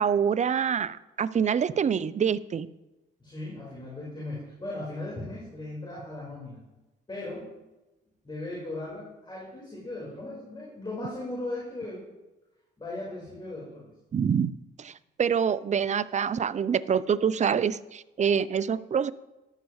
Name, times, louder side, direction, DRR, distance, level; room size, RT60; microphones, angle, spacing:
voice 1, 0.0-2.7 14.1-14.5 14.8-14.9 15.2-19.1, right 7 dB, 35° right, 16 dB, 0.5 m, -26 dB
voice 2, 3.2-6.6 7.1-7.5 8.2-12.0 12.8-13.9, left 2 dB, 25° left, -5 dB, 4.5 m, -37 dB
13.5 x 11.5 x 3.2 m, 1.0 s
cardioid pair, 90°, 20 cm